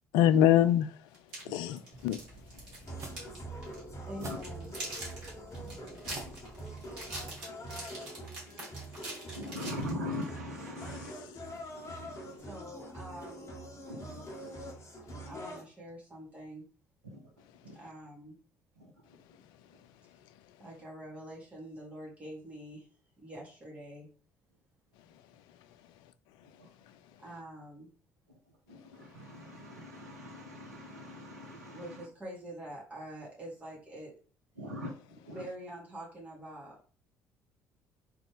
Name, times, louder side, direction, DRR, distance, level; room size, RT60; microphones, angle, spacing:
voice 1, 0.1-1.1 1.4-2.2 7.5-7.6 12.2-12.3 26.9-27.0 30.8-30.9, left 11 dB, 60° left, 0.4 m, -25 dB
sound 1, 1.1-3.4 3.6-3.8 4.2-10.3, right 1 dB, 60° right, 1.9 m, -43 dB
voice 2, 1.4-1.8 2.9-3.1 4.2-4.4 5.5-5.7 6.2-6.3 6.8-6.9 8.4-8.5 9.3-11.1 11.8-12.4 13.9-14.5 17.0-17.3 17.6-17.8 18.8-18.9 26.4-26.7 28.3-28.4 28.7-32.1 34.6-35.4, left 1 dB, 80° right, 0.7 m, -42 dB
sound 2, 1.9-7.3, right 2 dB, 35° right, 1.3 m, -49 dB
sound 3, 2.8-15.6, right 1 dB, 35° left, 1.4 m, -45 dB
voice 3, 4.0-4.9 12.3-13.5 15.3-16.6 17.7-18.4 20.6-22.9 23.2-24.1 27.2-27.9 31.7-34.2 35.3-36.8, equal, 15° right, 2.4 m, -45 dB
3.8 x 3.5 x 3.5 m
figure-of-eight pair, 50°, 9 cm